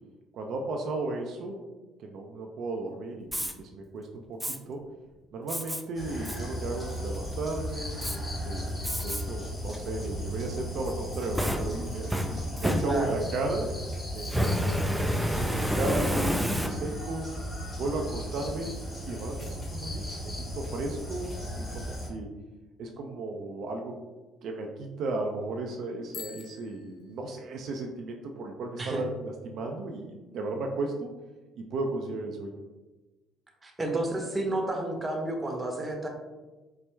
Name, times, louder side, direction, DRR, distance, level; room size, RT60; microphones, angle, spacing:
voice 1, 0.3-1.6 2.0-4.8 5.3-13.7 14.1-17.3 17.7-18.8 19.1-22.3 22.8-24.0 24.4-31.1 31.6-32.5, right 2 dB, 65° right, 2 dB, 0.4 m, -35 dB
Fire, 3.2-3.5 4.4-4.6 5.5-5.8 6.3-6.4 6.9-7.3 8.0-8.2 8.8-9.2 9.7-9.8 10.9-13.3 14.2-17.1, equal, 5° right, 0.4 m, -29 dB
sound 1, 5.9-22.1, equal, 20° left, 1.3 m, -36 dB
voice 2, 12.8-13.2 28.8-29.0 33.6-36.1, right 1 dB, 20° right, 2 dB, 0.8 m, -30 dB
Bicycle bell, 26.1-27.8, left 7 dB, 70° left, 0.5 m, -46 dB
4.5 x 2.0 x 3.3 m, 1.2 s
supercardioid pair, 85°, 0 cm